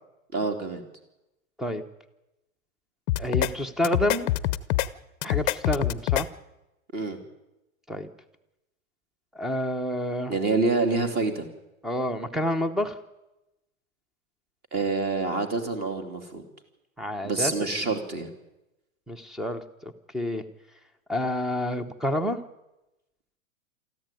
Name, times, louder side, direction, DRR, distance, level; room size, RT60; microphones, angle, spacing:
voice 1, 0.3-0.8 6.9-7.2 10.3-11.5 14.7-16.4 17.2-18.3, right 3 dB, 25° right, 7 dB, 3.0 m, -27 dB
sound 1, 3.1-3.5 3.8-4.9 5.2-6.2, left 15 dB, 35° left, 0.8 m, -25 dB
voice 2, 3.2-4.3 5.2-6.3 7.9-8.1 9.3-10.3 11.8-13.0 17.0-17.7 19.1-20.4 21.1-22.4, left 1 dB, ahead, 11 dB, 0.9 m, -28 dB
24.0 x 14.5 x 9.2 m, 0.97 s
supercardioid pair, 150°, 40 cm